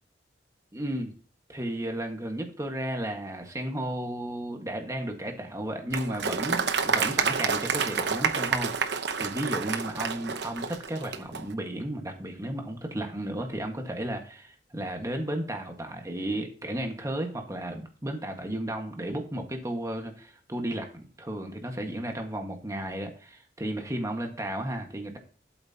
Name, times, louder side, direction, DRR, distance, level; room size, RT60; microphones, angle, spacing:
voice 1, 0.7-1.1 1.5-25.2, right 1 dB, 20° right, 3 dB, 1.6 m, -34 dB
Applause, 5.9-11.4, right 5 dB, 65° right, 0.9 m, -28 dB
12.0 x 8.1 x 2.9 m, 0.39 s
head